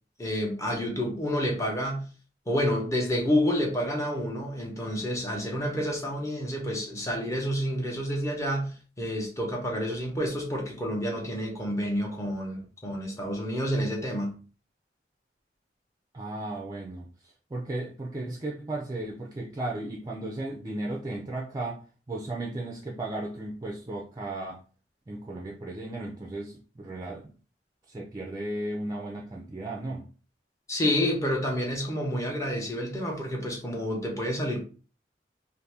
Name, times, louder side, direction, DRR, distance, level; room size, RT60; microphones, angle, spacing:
voice 1, 0.2-2.1 2.5-14.3 30.7-34.6, equal, 20° left, 0.8 m, -29 dB
voice 2, 16.1-21.8 22.1-24.6 25.1-27.4 27.9-30.1, right 2 dB, 20° right, 0.4 m, -35 dB
2.6 x 2.6 x 3.4 m
head